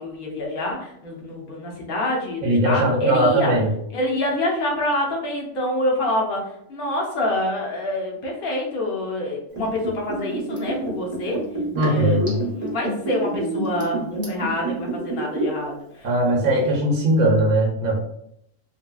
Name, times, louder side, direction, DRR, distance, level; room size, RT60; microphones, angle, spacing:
voice 1, 0.0-3.6 3.9-11.4 11.8-16.1, left 1 dB, 50° left, -1 dB, 0.8 m, -26 dB
voice 2, 2.4-3.7 11.7-12.4 16.0-18.0, right 1 dB, 75° right, -3 dB, 1.1 m, -19 dB
Liquid, 9.5-15.7 16.0-16.1, right 2 dB, 20° right, 0.6 m, -27 dB
3.2 x 2.6 x 2.2 m, 0.73 s
omnidirectional pair, 1.5 m